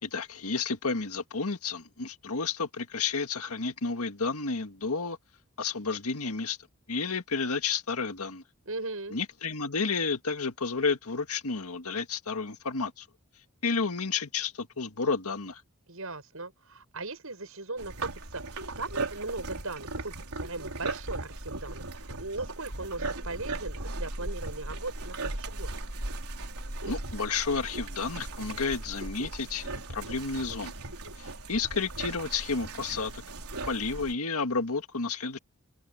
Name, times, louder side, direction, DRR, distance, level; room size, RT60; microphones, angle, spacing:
voice 1, 0.0-5.2 5.6-6.6 6.9-8.4 9.1-13.1 13.6-15.6 26.8-30.7 31.2-33.2 33.7-35.4, left 4 dB, 85° left, 1.8 m, -31 dB
voice 2, 8.6-9.2 15.9-25.7, right 3 dB, 70° right, 6.6 m, -38 dB
sound 1, 17.8-34.1, right 2 dB, 90° right, 4.3 m, -37 dB
open air
head